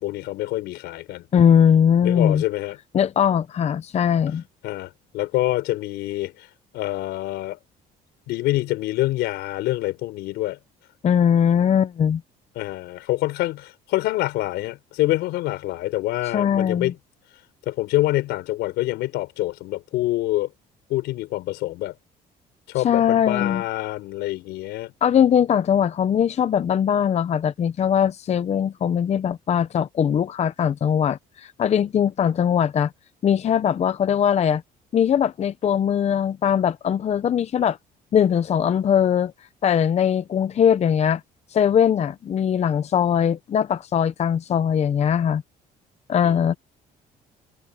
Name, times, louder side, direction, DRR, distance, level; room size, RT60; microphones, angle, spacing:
voice 1, 0.0-1.3 2.0-2.8 4.6-6.5 6.7-7.6 8.3-10.6 12.6-16.9 17.7-20.5 20.9-21.9 22.7-24.9 46.2-46.6, left 17 dB, 85° left, 4.4 m, -26 dB
voice 2, 1.3-2.4 2.9-4.4 11.0-12.2 16.3-16.9 22.8-23.6 25.0-32.9 33.2-34.6 34.9-37.8 38.1-39.3 39.6-41.2 41.5-45.4 46.1-46.5, left 8 dB, 40° left, 0.7 m, -20 dB
cardioid pair, 110°, 17 cm